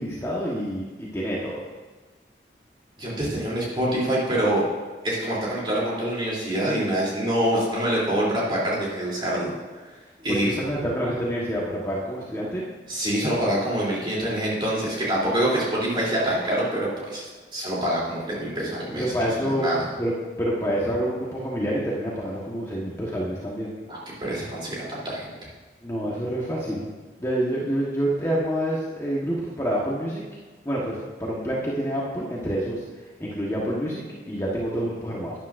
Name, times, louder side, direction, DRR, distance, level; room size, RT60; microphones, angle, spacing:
voice 1, 0.0-1.6 10.3-12.6 19.0-19.7 20.0-23.7 25.8-26.9 27.2-30.2 30.6-32.8 33.2-35.3, equal, 15° left, -5 dB, 1.3 m, -27 dB
voice 2, 3.0-4.6 5.0-9.5 10.2-10.5 12.9-19.1 19.4-19.8 23.9-25.3, right 1 dB, 30° right, -6 dB, 3.3 m, -25 dB
12.5 x 10.0 x 2.6 m, 1.3 s
head